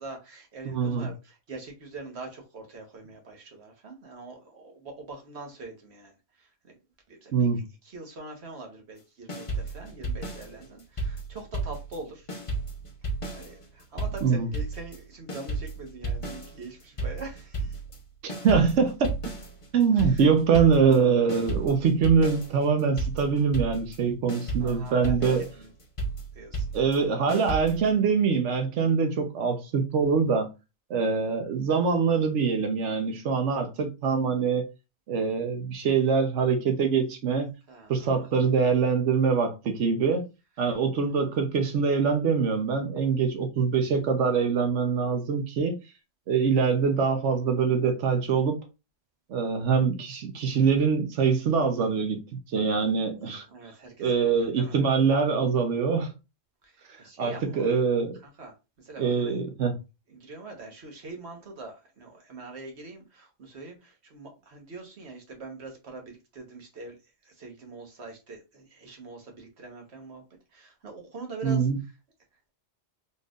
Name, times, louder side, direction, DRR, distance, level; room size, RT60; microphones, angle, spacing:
voice 1, 0.0-6.7 7.1-7.5 7.8-12.3 13.3-17.8 19.9-20.3 24.6-25.7 26.3-26.7 37.7-38.5 53.5-54.3 54.6-54.8 56.6-57.7 58.2-59.3 60.1-67.0 67.2-70.2 70.5-71.7, right 3 dB, 65° right, 1.4 m, -43 dB
voice 2, 0.7-1.1 7.3-7.6 14.2-14.5 18.2-19.1 19.7-25.4 26.7-30.5 30.9-34.6 35.1-37.5 37.9-40.2 40.6-45.8 46.3-48.6 49.3-53.4 54.0-56.1 57.2-58.2 59.0-59.7 71.4-71.8, right 5 dB, 90° right, 1.1 m, -24 dB
sound 1, 9.3-12.0 12.3-27.9, right 2 dB, 30° left, 0.9 m, -33 dB
4.3 x 3.3 x 2.4 m
omnidirectional pair, 1.2 m